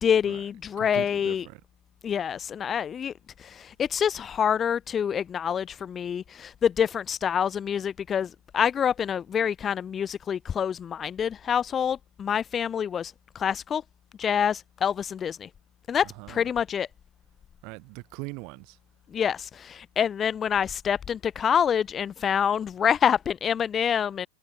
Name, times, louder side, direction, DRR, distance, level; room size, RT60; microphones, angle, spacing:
voice 1, 0.0-1.5 2.0-3.1 3.4-13.8 14.2-15.5 15.9-16.9 19.1-24.3, left 8 dB, 25° left, 0.5 m, -26 dB
voice 2, 0.8-1.6 16.0-16.5 17.6-18.8, right 29 dB, 45° right, 1.6 m, -41 dB
figure-of-eight pair, 90°, 0 cm